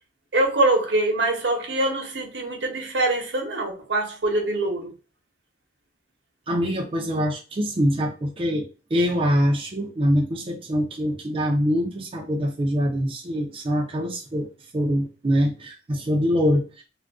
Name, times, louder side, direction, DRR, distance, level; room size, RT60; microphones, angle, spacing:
voice 1, 0.3-4.9, right 2 dB, 75° right, 0.9 m, -24 dB
voice 2, 6.5-14.5 14.7-16.8, equal, 30° right, 0.5 m, -24 dB
2.4 x 2.2 x 3.4 m
head